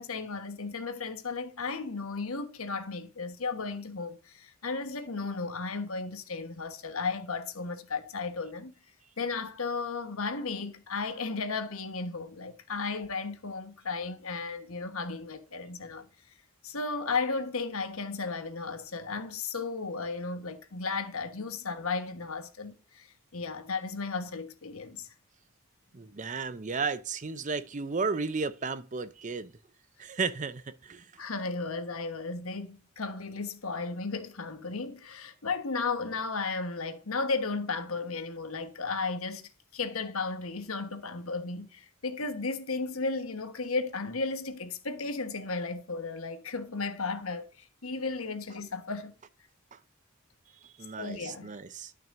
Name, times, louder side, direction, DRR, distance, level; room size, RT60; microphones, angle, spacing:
voice 1, 0.0-8.7 9.2-16.1 16.6-25.1 31.2-49.1 51.0-51.5, left 4 dB, 80° left, 1.3 m, -34 dB
voice 2, 25.9-29.5 30.0-31.2 49.7-49.8 50.6-51.9, right 4 dB, 35° right, 0.6 m, -34 dB
12.5 x 5.9 x 2.6 m
head